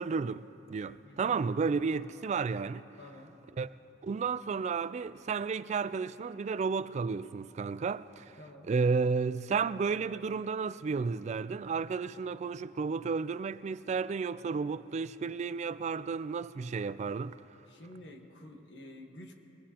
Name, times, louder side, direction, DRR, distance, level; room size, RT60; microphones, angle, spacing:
voice 1, 0.0-2.9 3.6-3.8 4.0-8.4 8.7-17.4, right 5 dB, 40° right, 0.3 m, -32 dB
voice 2, 1.0-1.4 3.0-3.4 8.4-8.7 17.7-19.3, left 1 dB, 75° left, 1.4 m, -50 dB
23.0 x 20.0 x 2.9 m
head